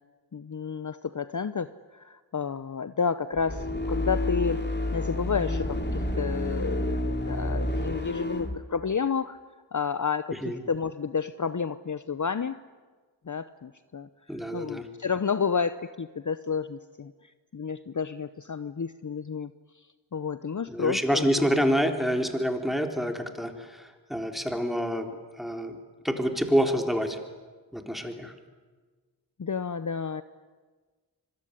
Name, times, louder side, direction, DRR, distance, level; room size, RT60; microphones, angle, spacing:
voice 1, 0.3-9.4 9.7-12.6 13.3-14.1 14.5-19.5 20.1-21.3 29.4-30.2, left 6 dB, 45° left, 13 dB, 0.8 m, -31 dB
sound 1, 3.3-8.6, left 1 dB, 25° left, 3.3 m, -29 dB
voice 2, 14.3-14.9 20.7-25.1 25.4-25.8 26.0-27.2 27.7-28.3, equal, ahead, 5 dB, 3.8 m, -27 dB
25.5 x 22.0 x 10.0 m, 1.4 s
cardioid pair, 45°, 44 cm